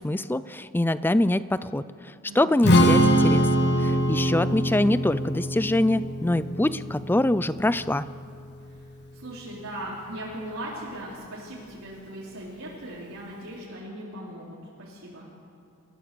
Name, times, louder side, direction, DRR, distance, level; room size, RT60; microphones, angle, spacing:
voice 1, 0.0-3.5 3.8-8.1, left 1 dB, 10° left, 15 dB, 0.4 m, -24 dB
voice 2, 2.2-2.6 6.4-6.8 8.7-8.9 9.1-15.3, right 1 dB, 70° right, -6 dB, 3.8 m, -39 dB
Strum, 2.6-8.9, equal, 50° left, 1.7 m, -23 dB
28.0 x 14.5 x 6.9 m, 2.7 s
head